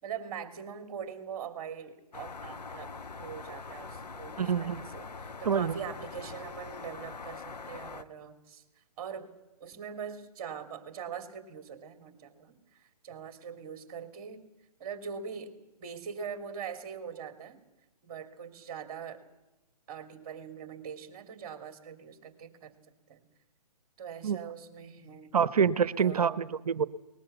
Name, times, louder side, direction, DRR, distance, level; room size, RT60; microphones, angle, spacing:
voice 1, 0.0-8.6 9.0-9.3 9.6-12.5 13.0-14.4 14.8-15.5 15.8-17.6 18.0-19.2 19.9-22.7 23.1-23.2 24.0-25.4 26.0-26.4, right 7 dB, 30° right, 7 dB, 3.0 m, -42 dB
sound 1, 2.1-8.0, left 4 dB, 85° left, 1.3 m, -43 dB
voice 2, 4.4-4.8 5.4-5.8 24.2-24.4 25.3-26.8, right 7 dB, 65° right, 16 dB, 1.0 m, -26 dB
21.0 x 20.0 x 8.3 m, 0.98 s
hypercardioid pair, 140°, 20 cm